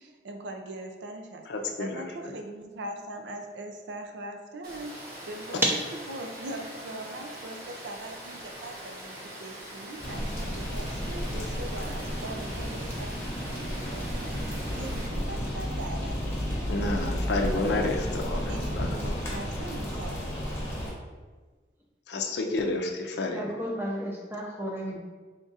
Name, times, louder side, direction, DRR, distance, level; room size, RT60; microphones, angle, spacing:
voice 1, 0.0-1.5 1.8-5.6 6.1-13.1 13.5-14.5 14.8-16.7 17.6-18.1 18.5-20.7, right 1 dB, 90° right, 4 dB, 0.5 m, -41 dB
voice 2, 1.5-2.0 16.7-19.2 22.1-23.6, left 2 dB, 75° left, 3 dB, 0.5 m, -30 dB
Water, 4.6-15.1, right 1 dB, 55° right, 1.1 m, -43 dB
sound 1, 10.0-20.9, equal, 15° left, 1.0 m, -32 dB
voice 3, 23.3-25.0, equal, 15° right, -2 dB, 0.6 m, -34 dB
3.6 x 2.4 x 4.0 m, 1.3 s
head